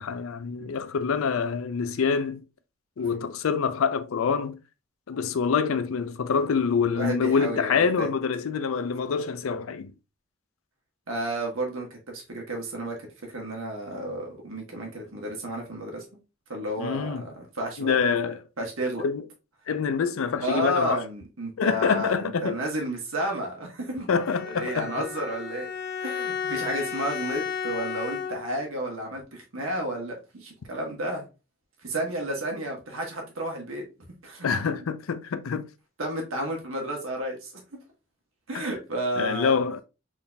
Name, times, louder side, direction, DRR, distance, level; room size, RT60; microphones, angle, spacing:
voice 1, 0.0-2.4 3.0-4.6 5.1-9.9 16.8-17.2 17.8-18.4 19.0-19.2 19.7-21.0 21.6-22.6 24.1-24.9 34.4-35.7 38.5-38.7 39.2-39.8, left 5 dB, 85° left, 0.4 m, -26 dB
voice 2, 6.9-8.1 11.1-16.0 16.5-18.0 18.6-19.0 20.4-24.1 24.5-25.7 26.0-31.2 31.8-33.8 34.2-34.5 36.0-37.5 38.5-39.6, right 1 dB, 80° right, 1.3 m, -32 dB
Bowed string instrument, 24.2-28.7, left 7 dB, 45° left, 0.8 m, -33 dB
3.9 x 3.7 x 2.2 m
head